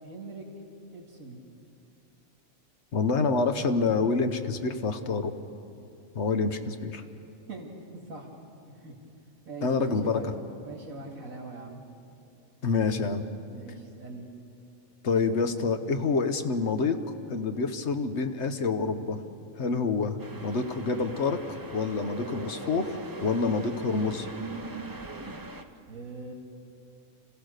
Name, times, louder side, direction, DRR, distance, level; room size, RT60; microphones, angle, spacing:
voice 1, 0.0-0.4 0.9-1.4 7.5-7.7 8.1-8.3 8.7-8.9 9.5-10.3 10.6-11.9 13.5-14.3 25.9-26.3, right 3 dB, 75° right, -4 dB, 2.8 m, -42 dB
voice 2, 2.9-5.3 6.1-7.0 9.6-10.3 12.6-13.2 15.0-17.0 17.3-19.2 19.6-21.4 21.7-24.3, left 4 dB, 55° left, 7 dB, 1.3 m, -27 dB
sound 1, 20.2-25.6, right 2 dB, 20° right, 0.7 m, -41 dB
27.0 x 16.0 x 6.6 m, 2.7 s
omnidirectional pair, 1.4 m